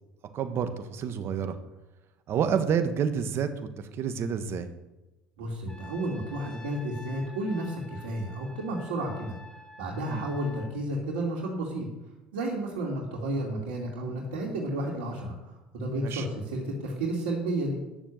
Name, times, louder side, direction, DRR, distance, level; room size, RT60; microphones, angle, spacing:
voice 1, 0.3-1.6 2.3-4.7 10.1-10.2 16.0-16.2, right 7 dB, 50° right, 9 dB, 1.4 m, -29 dB
voice 2, 5.4-9.4 9.8-11.9 12.3-15.3 15.7-17.8, right 1 dB, 80° right, -4 dB, 2.6 m, -32 dB
Trumpet, 5.7-10.7, left 3 dB, 15° left, 5.1 m, -48 dB
10.5 x 6.9 x 7.5 m, 1.0 s
supercardioid pair, 85°, 6 cm